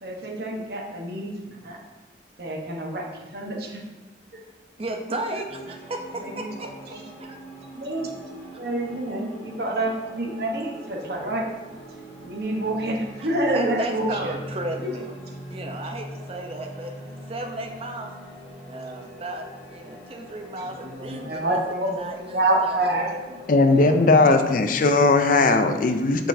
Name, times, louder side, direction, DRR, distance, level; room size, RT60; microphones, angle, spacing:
voice 1, 0.0-1.8 2.4-3.8 4.3-4.4 6.2-7.0 7.7-8.1 8.6-11.4 12.2-14.3 14.8-15.0 20.6-23.1, right 1 dB, 60° right, 0 dB, 1.0 m, -28 dB
voice 2, 4.8-6.7 7.2-7.4 13.5-15.1 15.5-18.1 18.7-21.6 22.0-22.2 23.0-23.4 23.7-23.9, right 1 dB, 35° right, 3 dB, 0.6 m, -34 dB
sound 1, 5.5-24.5, equal, 10° left, 1.9 m, -42 dB
voice 3, 23.5-26.3, left 3 dB, 50° left, 8 dB, 0.4 m, -18 dB
6.5 x 5.8 x 2.7 m, 1.2 s
head